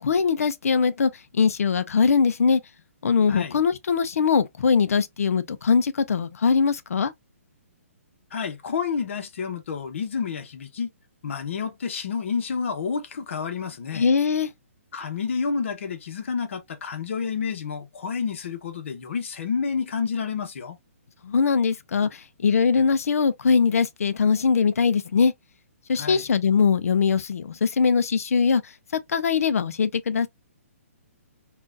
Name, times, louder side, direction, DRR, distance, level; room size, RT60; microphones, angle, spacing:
voice 1, 0.0-2.6 3.0-7.1 13.9-14.5 21.2-25.3 25.9-28.6 29.1-30.3, left 5 dB, 80° left, 0.5 m, -21 dB
voice 2, 8.3-10.9 11.2-14.1 14.9-20.8 25.9-26.3, left 6 dB, 55° left, 0.9 m, -29 dB
3.8 x 2.4 x 2.4 m
hypercardioid pair, 165°, 8 cm